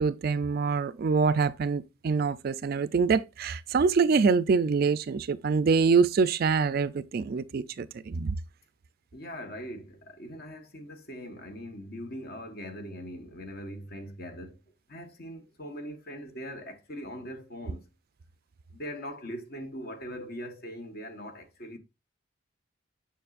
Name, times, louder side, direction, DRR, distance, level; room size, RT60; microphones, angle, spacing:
voice 1, 0.0-8.4, right 5 dB, 50° right, 0.4 m, -25 dB
voice 2, 9.1-14.6 14.9-17.9 18.7-21.8, equal, 50° left, 1.1 m, -41 dB
6.9 x 6.0 x 2.4 m
head